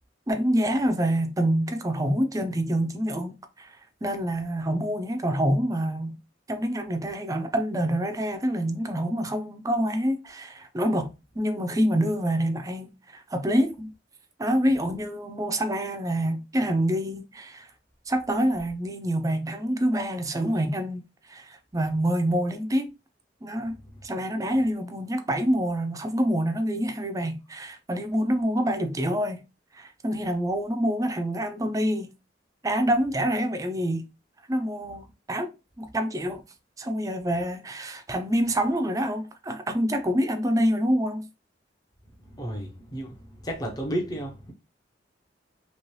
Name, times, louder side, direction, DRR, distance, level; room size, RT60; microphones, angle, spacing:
voice 1, 0.3-6.2 6.5-11.1 11.4-13.9 14.4-17.7 18.1-21.0 21.3-22.9 23.4-29.4 29.7-32.1 32.6-34.1 34.5-36.4 36.8-41.3, equal, 20° right, 0.4 m, -26 dB
voice 2, 42.3-43.2 43.4-44.5, right 1 dB, 20° left, 0.6 m, -32 dB
3.0 x 2.9 x 3.0 m
head